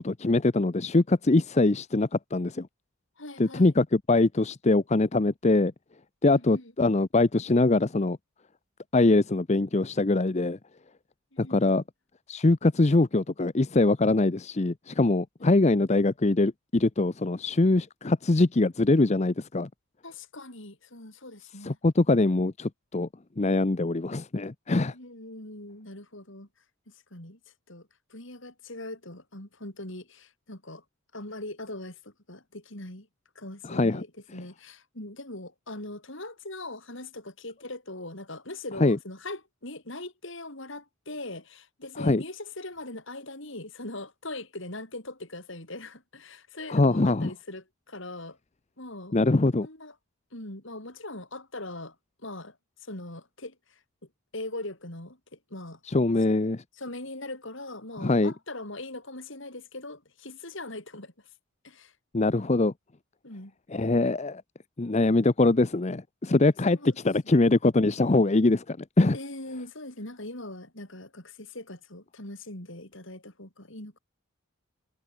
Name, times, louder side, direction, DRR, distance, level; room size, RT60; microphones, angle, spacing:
voice 1, 0.0-2.7 3.4-5.7 6.2-8.2 8.9-10.6 11.4-11.8 12.3-19.7 21.6-23.1 23.4-24.9 33.7-34.0 38.8-39.0 42.0-42.2 46.7-47.3 49.1-49.7 55.9-56.6 58.0-58.3 62.1-62.7 63.7-64.4 64.8-66.8 67.0-69.2, left 2 dB, 30° left, 0.6 m, -23 dB
voice 2, 3.2-3.7 6.2-6.7 11.3-11.8 15.4-15.6 20.0-21.8 24.9-26.5 26.9-27.4 27.7-30.8 31.1-33.1 33.3-48.4 48.8-49.2 49.6-49.9 50.3-51.9 52.2-53.8 54.3-55.8 56.7-61.3 61.6-61.9 63.2-63.5 66.7-67.0 69.1-74.0, left 2 dB, 60° left, 5.2 m, -41 dB
head